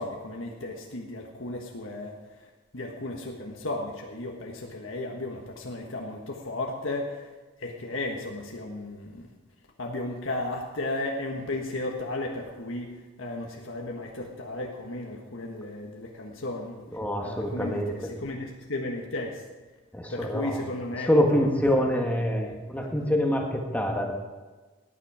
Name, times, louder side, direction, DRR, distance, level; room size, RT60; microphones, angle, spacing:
voice 1, 0.0-2.1 2.7-7.2 7.6-9.2 9.8-16.8 17.2-19.4 20.1-21.5 22.3-22.6, left 2 dB, 75° left, 0 dB, 1.5 m, -34 dB
voice 2, 16.9-18.1 19.9-20.7 20.9-24.1, equal, 5° left, 1 dB, 1.5 m, -26 dB
17.5 x 10.0 x 5.0 m, 1.3 s
head